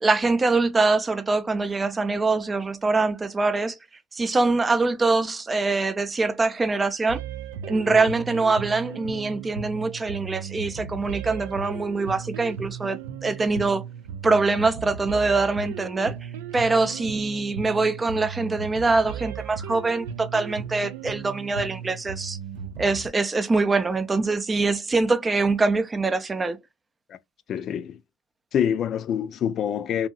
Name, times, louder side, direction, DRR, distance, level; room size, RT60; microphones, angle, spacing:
voice 1, 0.0-3.8 4.1-7.2 7.6-13.8 14.2-22.4 22.8-26.6, right 3 dB, 20° right, 0.4 m, -24 dB
sound 1, 7.1-23.1, right 7 dB, 85° right, 0.4 m, -36 dB
voice 2, 27.5-28.0 28.5-30.1, left 9 dB, 45° left, 0.3 m, -26 dB
2.7 x 2.6 x 2.3 m
supercardioid pair, 100°, 0 cm